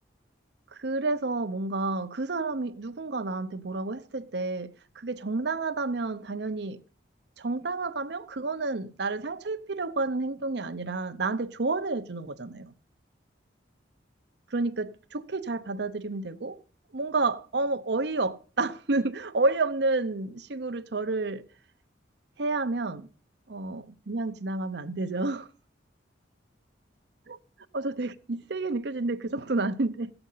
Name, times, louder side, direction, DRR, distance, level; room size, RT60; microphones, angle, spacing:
voice 1, 0.7-6.8 7.4-12.7 14.5-16.6 16.9-21.4 22.4-23.1 23.5-25.5 27.3-27.4 27.7-30.1, right 3 dB, 65° right, 0.8 m, -30 dB
16.0 x 7.9 x 5.6 m
head